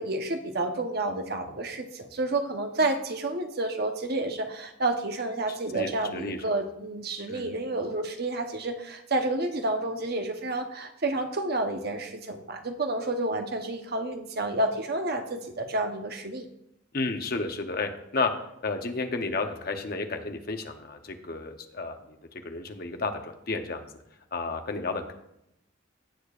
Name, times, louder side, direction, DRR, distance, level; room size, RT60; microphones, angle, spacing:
voice 1, 0.0-16.4, right 2 dB, 55° right, 5 dB, 1.0 m, -30 dB
voice 2, 5.7-6.4 7.3-7.5 16.9-18.3 18.6-22.0 22.4-23.8 24.3-25.1, left 3 dB, 50° left, 6 dB, 0.9 m, -32 dB
16.5 x 6.6 x 2.5 m, 0.81 s
head